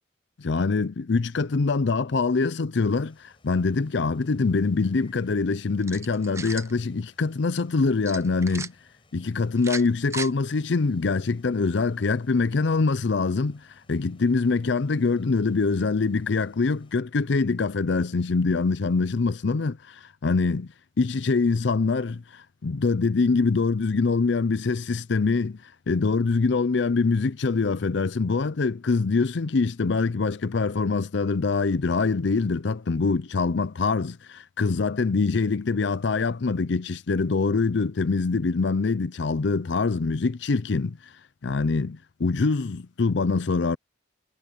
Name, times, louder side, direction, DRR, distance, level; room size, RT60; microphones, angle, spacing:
voice 1, 0.4-8.7 9.1-20.7 21.0-41.0 41.4-43.8, left 4 dB, 65° left, 0.5 m, -24 dB
sound 1, 3.0-17.0, left 2 dB, 25° left, 8.0 m, -62 dB
sound 2, 5.8-6.7 8.1-8.7 9.6-10.3, right 4 dB, 15° right, 0.6 m, -36 dB
head